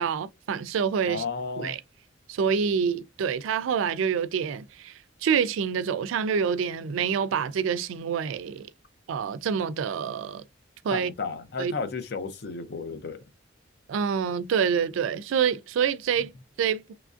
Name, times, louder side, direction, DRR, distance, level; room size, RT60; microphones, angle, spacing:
voice 1, 0.0-1.2 1.6-1.8 2.3-8.7 9.1-10.4 10.8-11.1 11.6-11.7 13.9-16.9, right 7 dB, 85° right, 0.3 m, -27 dB
voice 2, 1.1-1.7 10.9-13.2, left 4 dB, 55° left, 0.5 m, -33 dB
3.0 x 2.5 x 2.3 m
head